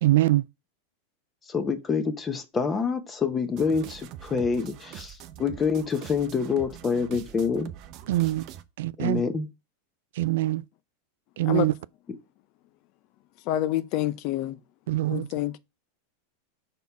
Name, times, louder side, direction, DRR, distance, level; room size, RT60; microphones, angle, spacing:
voice 1, 0.0-0.4 8.1-8.4 8.8-9.2 10.2-10.6 11.4-11.7 14.9-15.3, right 15 dB, 70° right, 0.3 m, -23 dB
voice 2, 1.4-7.7 9.0-9.5, left 5 dB, 20° left, 1.1 m, -27 dB
sound 1, 3.6-8.6, right 12 dB, 45° right, 0.7 m, -43 dB
voice 3, 13.5-14.6 15.1-15.6, left 14 dB, 50° left, 0.6 m, -27 dB
5.5 x 4.2 x 4.7 m
supercardioid pair, 130°, 0 cm